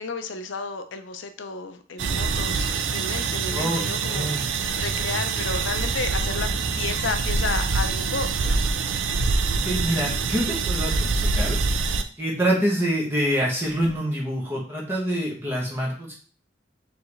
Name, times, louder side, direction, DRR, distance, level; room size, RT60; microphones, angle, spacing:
voice 1, 0.0-6.5 6.8-8.6, left 4 dB, 80° left, 8 dB, 0.6 m, -32 dB
sound 1, 2.0-12.0, right 4 dB, 85° right, 0.5 m, -25 dB
voice 2, 3.5-4.4 9.6-11.6 12.2-16.1, equal, 15° right, -3 dB, 1.0 m, -26 dB
4.5 x 3.4 x 3.2 m, 0.42 s
head